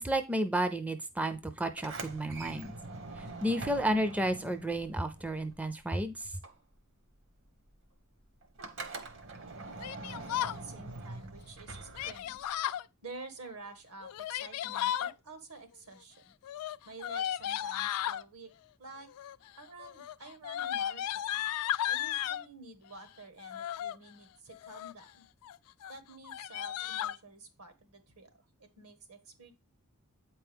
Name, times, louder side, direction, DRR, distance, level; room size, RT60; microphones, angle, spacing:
voice 1, 0.0-2.7 3.2-6.4, right 1 dB, 5° right, 9 dB, 0.4 m, -32 dB
Sliding door, 1.7-5.9 6.2-12.6, right 3 dB, 60° right, 1.0 m, -44 dB
voice 2, 9.5-12.5 13.0-16.4 16.8-18.5 18.8-19.1 19.6-21.4 21.9-25.3 25.9-29.5, right 3 dB, 75° right, 9 dB, 1.4 m, -50 dB
Yell, 9.8-10.6 11.9-12.8 14.0-15.1 16.4-18.2 19.1-19.5 19.8-22.4 23.4-24.0 24.5-25.0 25.4-25.6 25.8-25.9 26.2-27.2, left 11 dB, 75° left, 0.3 m, -35 dB
8.3 x 4.5 x 3.4 m, 0.26 s
head